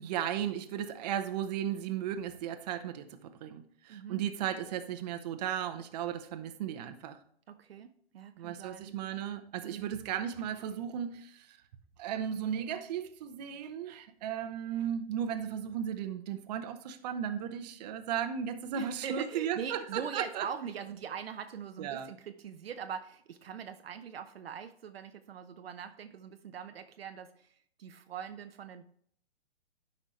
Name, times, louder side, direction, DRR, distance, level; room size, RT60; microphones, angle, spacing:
voice 1, 0.0-7.2 8.4-11.6 12.0-20.4 21.8-22.1, right 9 dB, 40° right, 0.9 m, -35 dB
voice 2, 3.9-4.2 7.5-8.9 9.6-9.9 18.7-28.8, right 7 dB, 70° right, 0.8 m, -42 dB
11.5 x 5.4 x 3.2 m
hypercardioid pair, 140°, 32 cm